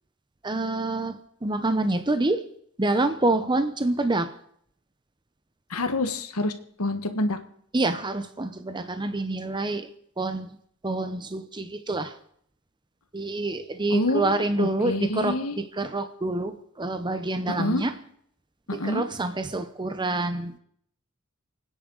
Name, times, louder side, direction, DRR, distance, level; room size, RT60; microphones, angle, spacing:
voice 1, 0.4-1.2 1.4-2.4 2.8-4.3 7.7-9.9 10.2-10.5 10.8-12.1 13.1-15.4 15.8-17.9 18.8-20.6, right 2 dB, 20° right, 9 dB, 0.8 m, -27 dB
voice 2, 5.7-7.4 13.9-15.6 17.5-17.8 18.7-19.0, left 2 dB, 90° left, 8 dB, 1.5 m, -27 dB
29.5 x 10.0 x 4.0 m, 0.66 s
head